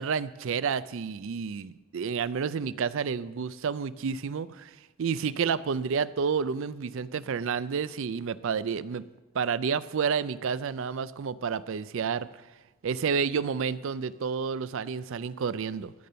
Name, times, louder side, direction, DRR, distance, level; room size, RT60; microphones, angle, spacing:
voice 1, 0.0-9.0 9.3-12.3 12.8-15.9, right 6 dB, 60° right, 17 dB, 0.4 m, -30 dB
14.5 x 6.7 x 6.8 m, 1.1 s
head